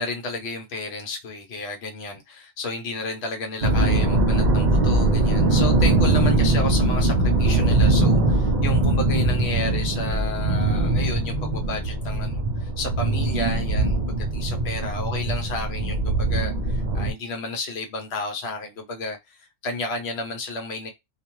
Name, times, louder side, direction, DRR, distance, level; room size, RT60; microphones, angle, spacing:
voice 1, 0.0-7.1 7.4-19.4 19.6-20.9, left 2 dB, 60° left, 0.9 m, -32 dB
sound 1, 3.6-17.1, right 2 dB, 55° right, 0.5 m, -21 dB
2.4 x 2.3 x 2.9 m
omnidirectional pair, 1.3 m